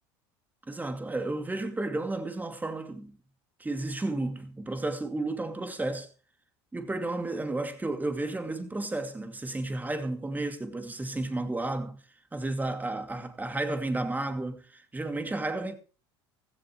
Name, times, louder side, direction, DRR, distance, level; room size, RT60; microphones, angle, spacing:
voice 1, 0.7-3.2 3.6-6.1 6.7-12.0 12.3-15.7, right 2 dB, 10° right, 2.5 m, -32 dB
16.0 x 15.0 x 3.1 m
hypercardioid pair, 90°, 13 cm